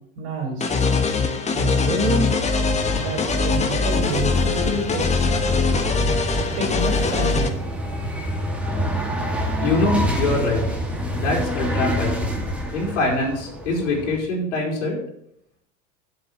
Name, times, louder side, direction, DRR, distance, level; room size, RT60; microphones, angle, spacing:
voice 1, 0.2-0.7 1.5-2.3 3.0-5.1 6.6-7.5, right 2 dB, 70° right, -1 dB, 3.7 m, -28 dB
sound 1, 0.6-7.5, left 4 dB, 20° left, 1.2 m, -22 dB
sound 2, 2.7-14.2, equal, 5° right, 1.9 m, -28 dB
voice 2, 9.6-10.8 11.1-12.4 12.7-15.0, left 2 dB, 85° left, -2 dB, 3.9 m, -24 dB
7.9 x 7.3 x 6.5 m, 0.74 s
hypercardioid pair, 110°, 36 cm